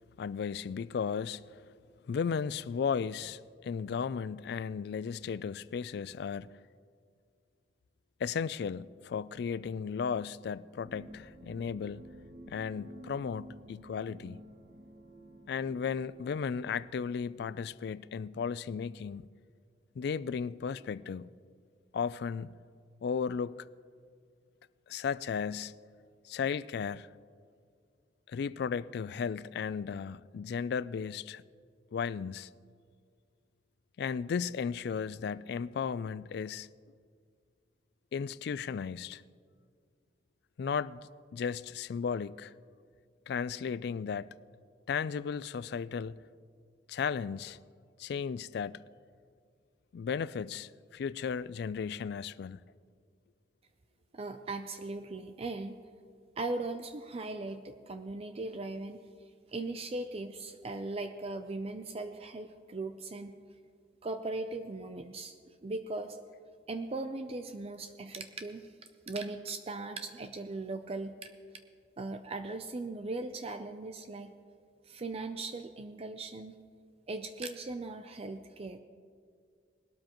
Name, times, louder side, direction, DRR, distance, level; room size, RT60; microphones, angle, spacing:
voice 1, 0.2-1.4 2.1-6.5 8.2-12.0 12.5-14.4 15.5-19.2 20.0-21.3 21.9-22.5 23.0-23.7 24.9-25.7 26.2-27.1 28.3-31.4 31.9-32.5 34.0-36.7 38.1-39.2 40.6-41.0 41.3-42.5 43.3-44.3 44.9-46.2 46.9-47.6 48.0-48.8 49.9-52.6, left 6 dB, 65° left, 0.3 m, -35 dB
sound 1, 10.8-17.5, equal, 60° right, 1.1 m, -52 dB
voice 2, 54.1-55.7 56.4-59.0 59.5-63.4 64.0-65.3 65.6-66.2 66.7-68.7 69.1-71.1 72.0-74.3 74.9-76.6 77.1-78.8, right 2 dB, 35° right, 0.5 m, -38 dB
20.5 x 12.5 x 3.0 m
head